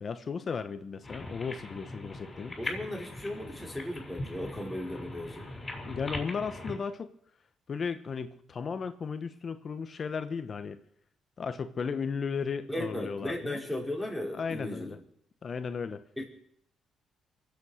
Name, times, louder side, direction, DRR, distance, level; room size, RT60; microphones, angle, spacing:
voice 1, 0.0-2.5 5.9-7.1 7.7-10.8 11.4-13.6 14.3-15.0 15.4-16.0, left 5 dB, 45° left, 10 dB, 1.0 m, -35 dB
sound 1, 1.0-6.8, left 2 dB, 25° left, 6.8 m, -40 dB
voice 2, 2.6-5.5 12.7-15.0 16.2-16.3, left 1 dB, 5° left, -2 dB, 5.2 m, -36 dB
24.0 x 8.4 x 6.5 m, 0.68 s
cardioid pair, 90°, 0 cm